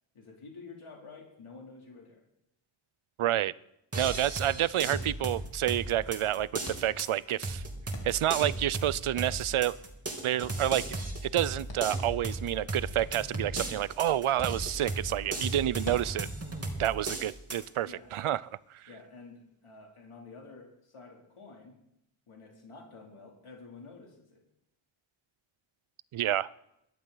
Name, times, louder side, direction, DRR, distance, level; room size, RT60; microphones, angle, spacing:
voice 1, 0.1-2.2 17.8-18.1 18.9-21.8 22.3-24.4, left 4 dB, 90° left, -1 dB, 3.1 m, -50 dB
voice 2, 3.2-3.5 3.9-7.6 8.0-9.8 10.2-11.0 11.2-16.3 16.8-18.8 26.1-26.5, right 12 dB, 80° right, 21 dB, 0.6 m, -29 dB
sound 1, 3.9-17.7, right 2 dB, 30° right, 2.7 m, -36 dB
sound 2, 6.6-18.1, left 1 dB, 60° left, 3.4 m, -50 dB
22.0 x 11.5 x 3.9 m, 0.82 s
wide cardioid pair, 95°, 50 cm